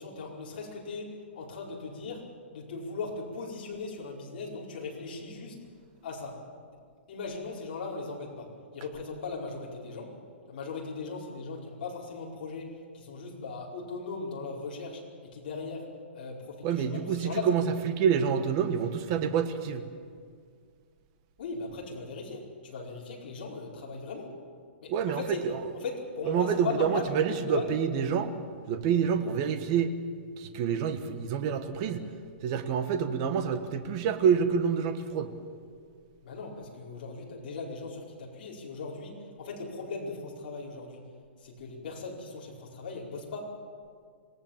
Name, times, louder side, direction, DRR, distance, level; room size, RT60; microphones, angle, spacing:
voice 1, 0.0-5.6 6.0-6.4 7.1-10.1 10.5-17.5 21.4-24.3 24.8-25.4 25.7-27.7 36.2-41.0 41.4-43.5, left 4 dB, 45° left, -3 dB, 5.0 m, -38 dB
voice 2, 16.6-19.8 24.9-25.2 25.5-25.6 26.3-28.3 28.7-29.9 30.4-32.0 32.4-35.3, right 7 dB, 25° right, 9 dB, 1.3 m, -27 dB
26.5 x 18.0 x 7.4 m, 2.1 s
hypercardioid pair, 175°, 7 cm